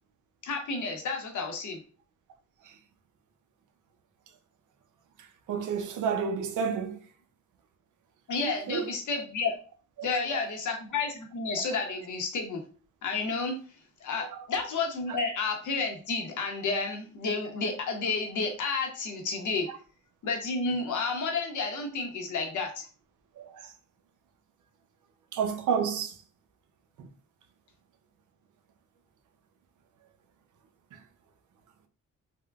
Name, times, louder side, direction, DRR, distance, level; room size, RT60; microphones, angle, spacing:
voice 1, 0.4-1.8 8.3-9.5 10.0-12.6 13.0-13.6 14.0-19.7 20.2-22.9, left 4 dB, 75° left, 0.8 m, -31 dB
voice 2, 5.5-7.0 8.4-8.9 10.0-10.1 10.3-10.5 14.2-14.4 23.4-23.7 25.3-26.1 30.9-31.0, right 6 dB, 75° right, 0.5 m, -30 dB
3.5 x 2.1 x 2.3 m
wide cardioid pair, 130°, 31 cm